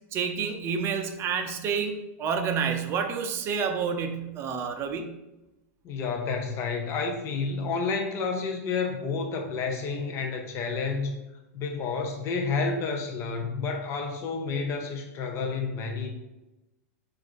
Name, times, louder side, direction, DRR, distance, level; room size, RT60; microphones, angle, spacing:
voice 1, 0.1-5.1, right 6 dB, 30° right, 5 dB, 0.5 m, -29 dB
voice 2, 5.8-11.1 11.5-16.1, left 4 dB, 30° left, 3 dB, 0.6 m, -30 dB
3.9 x 2.5 x 4.5 m, 0.99 s
hypercardioid pair, 135°, 9 cm